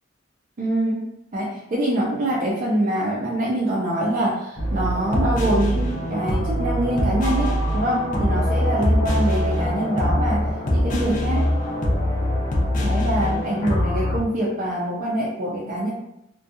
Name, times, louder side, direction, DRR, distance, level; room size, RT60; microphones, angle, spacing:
voice 1, 0.6-1.0 1.3-10.5 10.7-11.5 12.8-15.9, right 1 dB, 45° right, -4 dB, 0.4 m, -24 dB
sound 1, 4.6-14.2, equal, 45° left, 0.5 m, -23 dB
2.6 x 2.2 x 2.5 m, 0.83 s
head